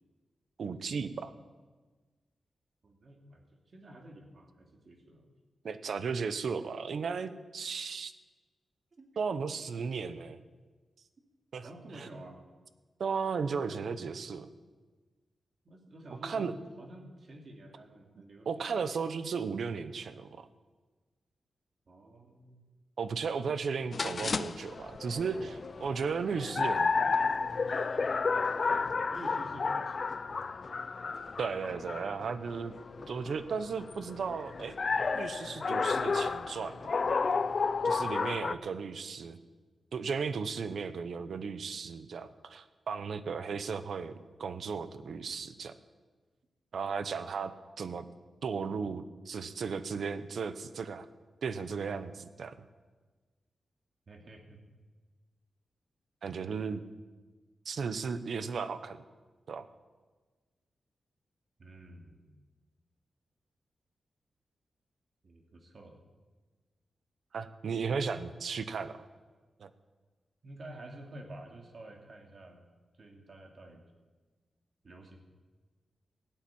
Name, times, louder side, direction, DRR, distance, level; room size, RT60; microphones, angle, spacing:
voice 1, 0.6-1.3 5.6-8.1 9.2-10.4 11.5-11.7 12.0-12.1 13.0-14.5 16.2-16.5 18.5-20.5 23.0-27.3 31.4-32.7 33.1-34.8 35.1-36.8 37.8-39.4 39.9-44.1 44.4-45.7 46.7-48.0 48.4-51.1 51.4-52.6 56.2-56.8 57.6-59.0 59.5-59.7 67.3-69.0 69.6-69.7, right 5 dB, 65° right, 12 dB, 0.9 m, -35 dB
voice 2, 2.8-5.3 8.9-9.1 11.6-12.4 13.3-13.9 15.6-18.7 21.9-22.6 28.7-30.6 38.4-39.0 54.1-54.6 61.6-62.3 65.2-65.9 70.4-72.6 72.9-73.8 74.8-75.2, right 1 dB, 45° right, 3 dB, 2.5 m, -50 dB
sound 1, 23.9-38.6, left 4 dB, 40° left, 0.4 m, -32 dB
16.5 x 9.0 x 8.6 m, 1.3 s
wide cardioid pair, 150°, 0 cm